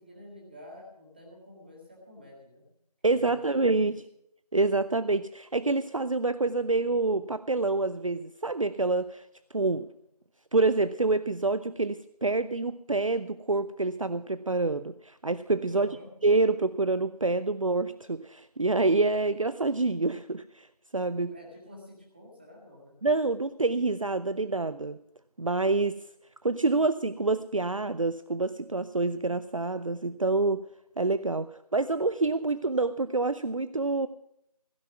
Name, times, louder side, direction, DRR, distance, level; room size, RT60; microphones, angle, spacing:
voice 1, 0.0-2.7 3.1-3.9 15.7-16.1 21.2-23.0, left 1 dB, 15° right, -1 dB, 1.9 m, -49 dB
voice 2, 3.0-4.0 4.5-9.2 9.5-9.9 10.5-15.9 16.2-20.7 20.9-21.3 23.0-25.0 25.4-26.0 26.4-30.6 31.0-34.1, right 3 dB, 55° right, 14 dB, 0.5 m, -27 dB
16.0 x 9.2 x 6.0 m, 0.74 s
figure-of-eight pair, 175°, 20 cm